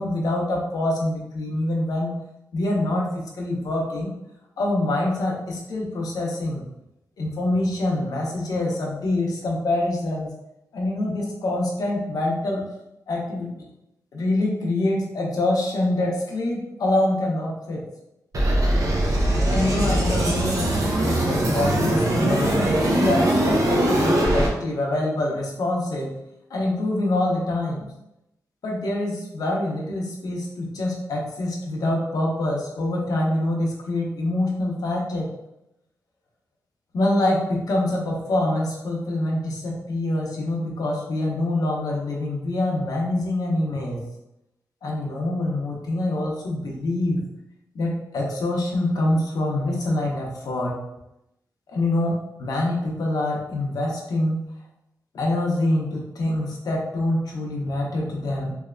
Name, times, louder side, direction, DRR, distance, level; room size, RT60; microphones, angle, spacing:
voice 1, 0.0-2.1 2.5-4.1 4.6-6.6 7.2-10.3 10.7-12.6 13.1-13.5 14.1-17.8 19.0-26.1 26.5-27.9 28.6-35.3 36.9-44.0 44.8-47.2 47.7-50.7 51.7-54.5 55.1-58.5, left 1 dB, 75° left, -2 dB, 0.7 m, -25 dB
sound 1, 18.3-24.5, right 1 dB, 60° right, 0.7 m, -21 dB
3.2 x 2.8 x 2.4 m, 0.86 s
cardioid pair, 70°, 6 cm